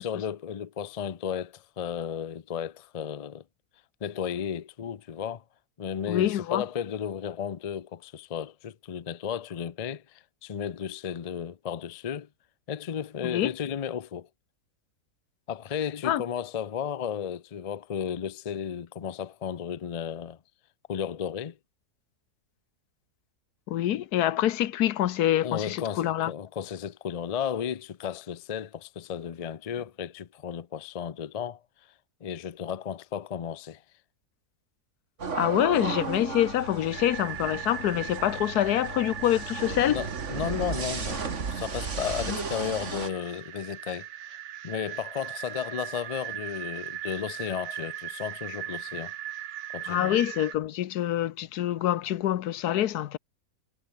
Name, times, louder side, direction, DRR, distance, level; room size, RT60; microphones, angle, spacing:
voice 1, 0.0-3.4 4.0-5.4 5.8-12.3 12.7-14.3 15.5-20.4 20.9-21.6 25.4-31.6 32.2-33.8 39.9-41.2 41.5-44.4 44.6-49.1 49.7-50.3, left 8 dB, 50° left, 0.4 m, -34 dB
voice 2, 6.1-6.6 13.2-13.5 16.0-16.2 23.7-26.3 35.3-40.0 42.3-42.4 49.9-53.2, left 12 dB, 85° left, 1.3 m, -26 dB
sound 1, 35.2-43.1, right 5 dB, 50° right, 2.2 m, -34 dB
sound 2, 36.9-50.6, right 11 dB, 85° right, 1.4 m, -39 dB
omnidirectional pair, 1.6 m